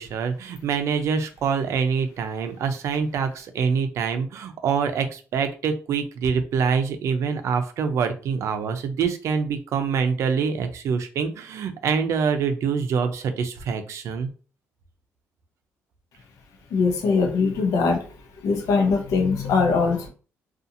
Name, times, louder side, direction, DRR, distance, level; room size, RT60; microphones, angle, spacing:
voice 1, 0.0-14.3, right 6 dB, 65° right, 7 dB, 0.5 m, -25 dB
voice 2, 16.7-18.0 18.4-20.1, left 4 dB, 80° left, 4 dB, 0.7 m, -21 dB
2.5 x 2.4 x 2.7 m, 0.37 s
cardioid pair, 140°, 5 cm